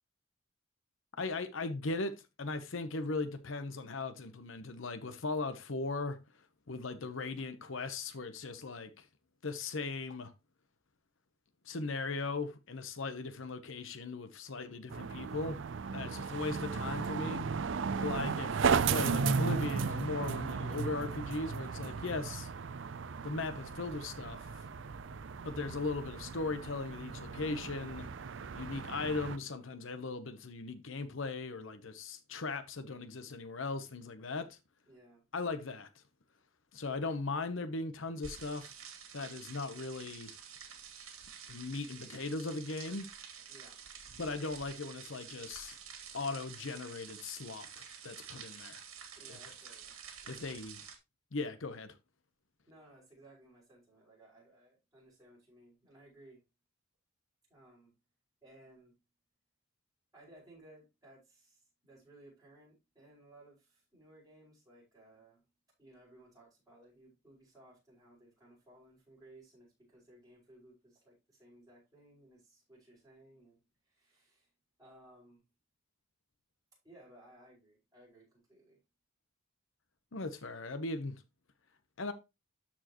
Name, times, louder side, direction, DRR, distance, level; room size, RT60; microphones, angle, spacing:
voice 1, 1.2-6.2 6.7-9.1 9.4-10.3 11.6-15.6 15.9-17.5 18.0-22.5 23.2-24.6 25.4-28.1 28.5-34.6 35.3-35.9 36.7-38.7 39.1-40.3 41.5-43.1 44.2-45.8 46.1-48.8 49.3-49.4 50.3-50.8 51.3-52.0 80.1-81.1 82.0-82.1, left 3 dB, 70° left, 0.9 m, -38 dB
voice 2, 14.5-14.9 16.0-16.3 17.8-18.1 34.9-35.2 43.5-43.8 49.2-49.9 50.2-50.3 52.7-56.4 57.5-57.9 58.4-58.9 60.1-65.4 65.8-73.6 73.9-74.5 74.8-75.4 76.8-78.8, right 1 dB, 15° right, 5.3 m, -60 dB
sound 1, 14.9-29.4, right 5 dB, 60° right, 0.5 m, -35 dB
sound 2, 38.2-51.0, right 7 dB, 85° right, 1.9 m, -50 dB
13.0 x 4.5 x 3.0 m
head